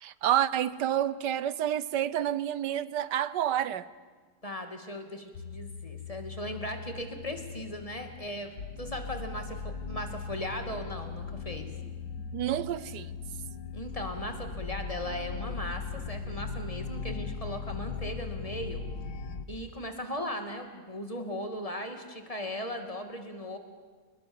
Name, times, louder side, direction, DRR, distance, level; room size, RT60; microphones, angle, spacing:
voice 1, 0.0-3.9 12.3-13.1, right 11 dB, 80° right, 1.5 m, -29 dB
voice 2, 4.4-11.7 13.7-18.8 19.5-23.6, left 1 dB, 20° left, 2.6 m, -38 dB
sound 1, 5.3-19.5, left 5 dB, 70° left, 1.7 m, -39 dB
28.5 x 20.5 x 7.2 m
omnidirectional pair, 1.8 m